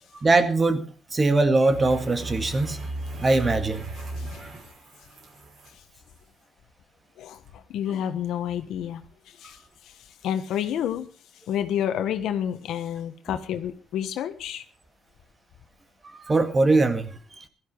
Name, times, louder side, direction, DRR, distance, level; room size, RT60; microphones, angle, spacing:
voice 1, 0.2-2.8 3.1-3.9 16.1-17.2, right 3 dB, 30° right, 9 dB, 2.0 m, -22 dB
sound 1, 1.7-5.7 7.3-7.5, right 1 dB, 60° right, 5.8 m, -36 dB
voice 2, 7.2-9.0 9.4-9.6 10.2-11.1 11.5-14.6, left 10 dB, 80° left, 10 dB, 1.4 m, -29 dB
16.0 x 12.5 x 4.7 m, 0.38 s
cardioid pair, 90°, 0 cm